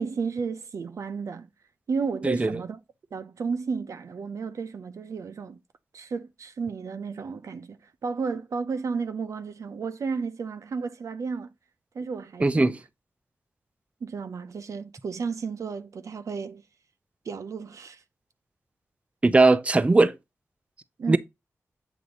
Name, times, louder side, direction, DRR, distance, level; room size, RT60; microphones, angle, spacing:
voice 1, 0.0-1.5 1.9-2.8 3.1-5.6 5.9-11.5 11.9-12.7 14.0-16.6 17.3-18.0 21.0-21.2, right 5 dB, 75° right, 0.7 m, -32 dB
voice 2, 2.2-2.6 12.4-12.8 19.2-20.2 21.1-21.2, right 2 dB, 25° right, 0.5 m, -19 dB
8.0 x 2.7 x 5.0 m
wide cardioid pair, 80°, 5 cm